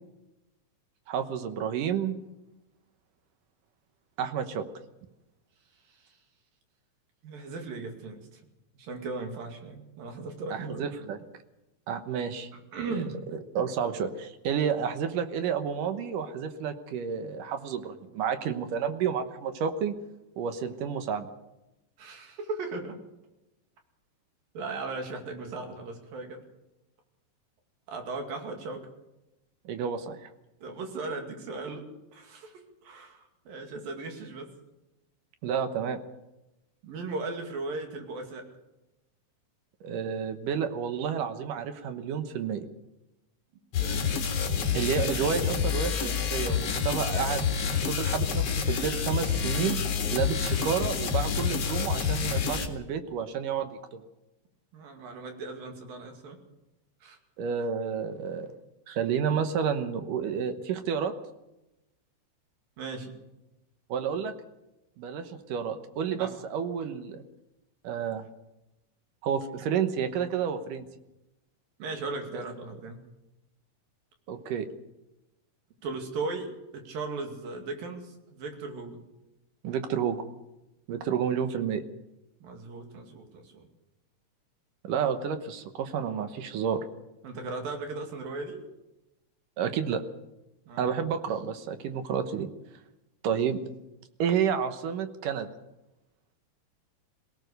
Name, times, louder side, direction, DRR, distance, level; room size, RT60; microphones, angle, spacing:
voice 1, 1.1-2.2 4.2-4.6 10.5-11.2 11.9-12.5 12.9-13.0 13.3-20.0 20.4-21.3 29.7-30.3 35.4-36.0 39.8-42.7 44.7-47.4 47.9-49.8 50.1-54.0 57.4-58.5 58.9-61.1 63.9-64.3 65.0-67.2 67.8-68.2 69.2-70.9 72.3-72.4 74.3-74.7 79.6-80.3 80.9-81.8 84.8-86.8 89.6-90.0 90.8-92.5 93.2-93.6 94.2-95.5, right 7 dB, 75° right, 9 dB, 2.7 m, -30 dB
voice 2, 7.2-8.4 8.7-10.8 12.5-13.2 22.0-23.0 24.5-26.4 27.9-28.8 30.6-34.5 36.8-38.5 43.8-44.1 54.7-56.4 57.0-57.2 62.8-63.2 66.2-66.3 71.8-73.0 75.8-79.0 82.4-83.7 87.2-88.6 90.7-90.9, right 3 dB, 90° right, 4 dB, 4.3 m, -37 dB
sound 1, 43.7-52.7, left 6 dB, 50° left, 2.7 m, -28 dB
22.5 x 17.5 x 6.6 m, 0.96 s
omnidirectional pair, 3.9 m